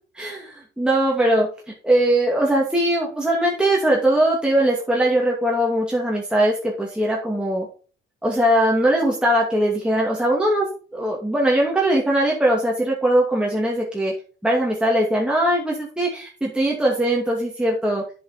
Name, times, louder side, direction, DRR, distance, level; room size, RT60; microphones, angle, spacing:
voice 1, 0.2-0.5 0.8-1.5 1.8-7.7 8.2-14.1 14.4-18.0, right 1 dB, 5° right, -3 dB, 2.2 m, -20 dB
7.6 x 6.0 x 4.3 m, 0.37 s
cardioid pair, 90°, 20 cm